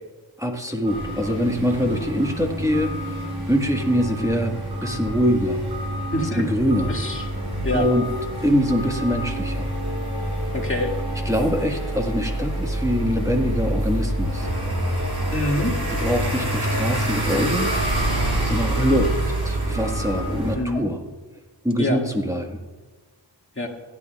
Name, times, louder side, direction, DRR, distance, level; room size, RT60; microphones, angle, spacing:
voice 1, 0.4-5.6 6.3-6.9 7.7-8.1 8.4-9.7 11.2-14.5 16.0-17.7 18.4-21.0 21.6-22.6, equal, 5° right, 2 dB, 1.5 m, -23 dB
sound 1, 0.8-20.5, right 1 dB, 55° right, 4.7 m, -27 dB
voice 2, 6.1-6.4 6.9-7.3 7.6-7.8 10.5-10.9 15.3-15.7 20.5-20.8 21.8-22.0 23.6-23.7, left 1 dB, 25° left, -1 dB, 2.1 m, -25 dB
28.0 x 9.8 x 2.4 m, 1.3 s
wide cardioid pair, 55°, 45 cm